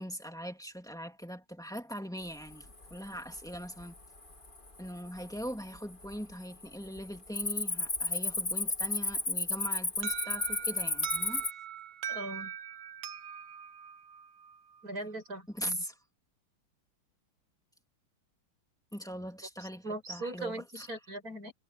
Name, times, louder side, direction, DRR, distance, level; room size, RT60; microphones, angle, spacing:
voice 1, 0.0-3.9 4.8-11.4 15.5-16.0 18.9-20.9, equal, ahead, 2.5 m, -41 dB
Cricket, 2.5-3.0 3.4-3.8 4.4-4.5 5.2-5.8 6.0-6.3 6.6-11.5, left 2 dB, 20° left, 2.5 m, -32 dB
Alarm, 10.0-14.8, right 9 dB, 85° right, 1.9 m, -42 dB
voice 2, 12.1-12.5 14.8-15.8 19.6-21.5, right 1 dB, 40° right, 6.8 m, -40 dB
omnidirectional pair, 2.4 m